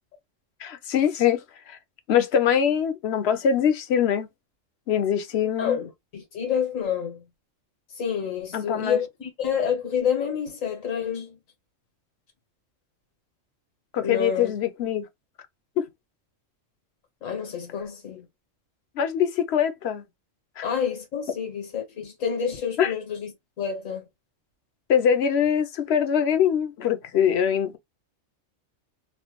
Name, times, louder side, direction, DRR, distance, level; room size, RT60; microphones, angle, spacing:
voice 1, 0.6-1.8 2.1-4.3 4.9-5.8 8.5-9.0 13.9-15.1 15.8-15.9 19.0-20.0 20.6-20.7 22.8-22.9 24.9-27.8, left 8 dB, 65° left, 0.8 m, -23 dB
voice 2, 5.6-7.2 7.9-11.4 14.0-14.5 17.2-18.3 20.6-23.3 23.6-24.0, left 7 dB, 85° left, 1.5 m, -28 dB
3.1 x 2.2 x 2.8 m
omnidirectional pair, 1.3 m